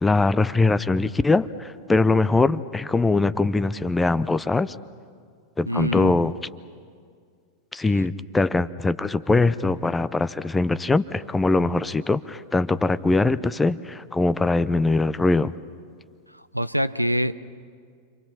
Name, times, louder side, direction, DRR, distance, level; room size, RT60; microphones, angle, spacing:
voice 1, 0.0-4.7 5.6-6.3 7.7-15.5, left 3 dB, 10° left, 0.6 m, -22 dB
voice 2, 5.7-6.1 16.3-17.3, equal, 90° right, 0.6 m, -25 dB
30.0 x 25.0 x 5.8 m
figure-of-eight pair, 90°, 0 cm